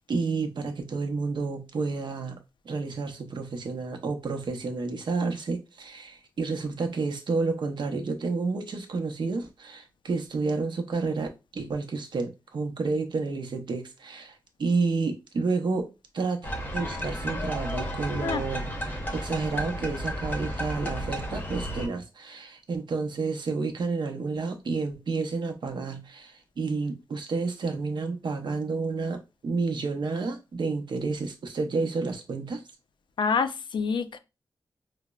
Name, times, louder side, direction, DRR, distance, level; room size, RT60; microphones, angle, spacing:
voice 1, 0.1-2.4 2.6-32.6, right 4 dB, 65° right, 0.6 m, -30 dB
sound 1, 16.4-21.9, equal, 20° left, 0.7 m, -33 dB
voice 2, 33.2-34.2, left 5 dB, 75° left, 0.4 m, -27 dB
4.8 x 2.0 x 2.2 m
wide cardioid pair, 120°, 8 cm